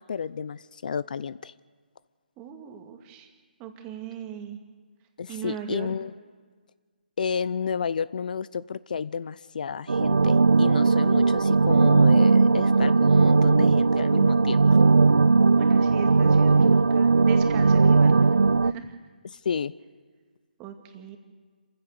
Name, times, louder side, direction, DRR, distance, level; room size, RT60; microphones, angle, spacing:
voice 1, 0.0-1.5 5.2-6.1 7.2-14.6 19.2-19.7, left 6 dB, 55° left, 18 dB, 0.6 m, -31 dB
voice 2, 2.4-3.3 3.6-4.6 5.3-5.9 15.5-18.9 20.6-21.2, right 9 dB, 20° right, 4 dB, 2.3 m, -39 dB
sound 1, 9.9-18.7, right 4 dB, 80° right, 0.5 m, -18 dB
27.0 x 15.5 x 6.9 m, 1.5 s
figure-of-eight pair, 150°, 5 cm